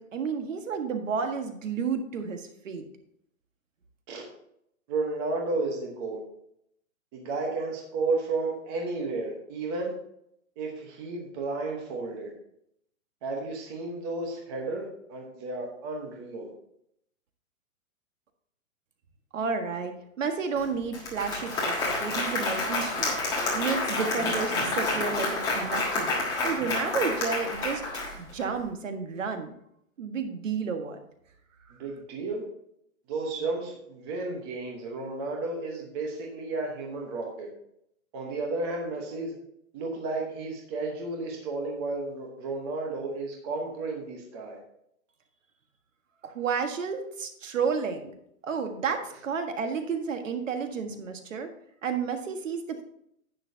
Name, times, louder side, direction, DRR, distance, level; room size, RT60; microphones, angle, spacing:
voice 1, 0.0-2.8 19.3-23.2 23.5-26.1 26.4-29.5 30.0-31.0 46.2-48.1 48.4-51.5 51.8-52.8, right 5 dB, 60° right, 6 dB, 1.6 m, -31 dB
voice 2, 4.9-6.2 7.1-9.9 10.6-12.3 13.2-16.5 31.7-32.4 33.1-37.5 38.1-39.4 39.7-44.6, right 3 dB, 20° right, 0 dB, 1.1 m, -32 dB
Applause, 20.6-20.7 20.9-28.5, left 2 dB, 10° left, 1.4 m, -29 dB
10.5 x 8.8 x 2.8 m, 0.75 s
hypercardioid pair, 170°, 42 cm